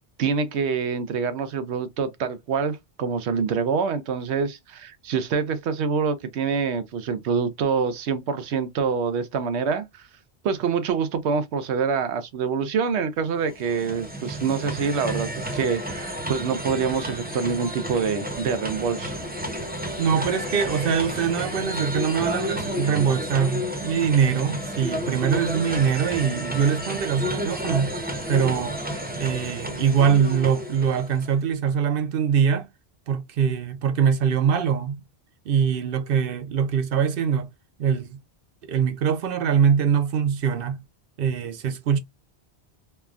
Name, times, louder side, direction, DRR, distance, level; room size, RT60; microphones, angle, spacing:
voice 1, 0.2-10.1 10.4-19.2, right 5 dB, 90° right, 0.9 m, -26 dB
sound 1, 13.3-31.4, equal, 10° right, 0.7 m, -31 dB
voice 2, 20.0-27.9 28.3-28.7 29.2-32.7 33.1-35.0 35.5-37.5 37.8-38.2 38.6-40.8 41.2-42.0, right 7 dB, 60° right, 0.7 m, -23 dB
3.3 x 2.2 x 2.4 m
omnidirectional pair, 1.1 m